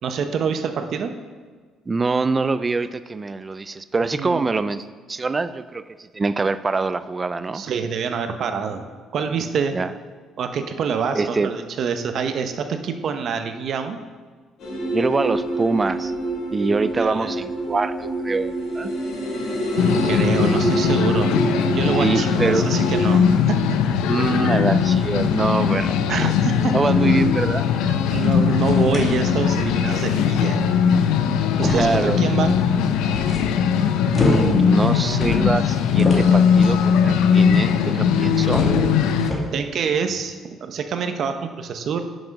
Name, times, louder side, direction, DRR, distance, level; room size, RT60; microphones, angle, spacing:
voice 1, 0.0-1.1 4.2-4.4 7.5-9.8 10.4-14.0 16.6-16.7 17.0-17.4 20.0-21.4 21.7-23.8 26.1-26.8 28.1-30.6 31.6-32.6 39.5-42.0, right 6 dB, 50° right, 7 dB, 0.8 m, -26 dB
voice 2, 1.9-7.6 9.7-9.9 11.1-11.5 14.9-16.1 16.5-18.9 21.9-22.7 24.1-25.9 26.7-28.0 31.6-32.2 34.1-38.7, right 3 dB, 20° right, 14 dB, 0.4 m, -24 dB
sound 1, 14.6-23.2, right 1 dB, 60° left, 2.6 m, -26 dB
sound 2, 19.8-39.3, left 7 dB, 90° left, 0.6 m, -19 dB
sound 3, 24.9-25.4 25.9-26.1 26.5-26.6 27.0-27.1 28.2-28.4 28.6-29.9 30.9-31.0 31.5-38.0 38.3-39.6, left 2 dB, 25° left, 2.0 m, -28 dB
9.9 x 6.1 x 5.2 m, 1.5 s
cardioid pair, 125°, 0 cm